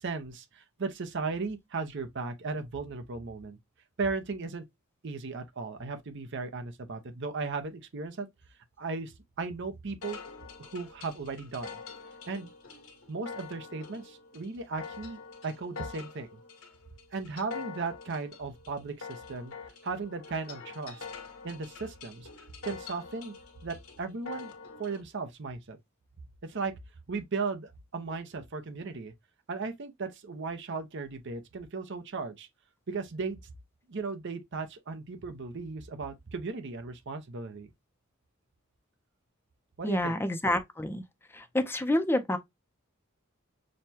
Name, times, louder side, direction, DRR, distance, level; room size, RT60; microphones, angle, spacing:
voice 1, 0.0-3.6 4.0-4.6 5.0-8.3 8.8-10.2 10.6-11.8 12.3-12.5 13.1-16.4 17.1-19.5 19.8-21.1 21.4-22.3 22.6-23.3 23.6-24.5 24.8-25.8 26.4-26.7 27.1-29.1 29.5-32.5 32.9-33.5 33.9-37.7 39.8-40.1, right 4 dB, 55° right, 0.7 m, -36 dB
sound 1, 10.0-25.0, left 5 dB, 80° left, 1.3 m, -45 dB
voice 2, 39.8-41.0 41.4-42.4, left 1 dB, 10° left, 0.5 m, -28 dB
6.3 x 2.2 x 2.7 m
head